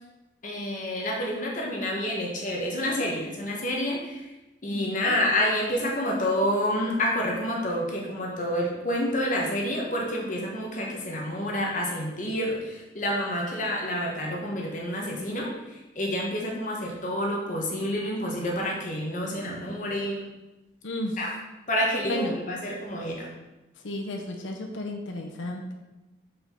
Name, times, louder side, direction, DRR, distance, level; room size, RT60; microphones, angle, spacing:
voice 1, 0.4-4.3 4.6-20.3 21.2-21.3 21.7-23.3, left 1 dB, 40° left, -2 dB, 1.2 m, -28 dB
voice 2, 4.7-5.2 20.8-21.2 22.1-22.4 23.8-25.6, left 1 dB, 80° left, 2 dB, 0.8 m, -33 dB
5.1 x 4.1 x 5.9 m, 1.0 s
head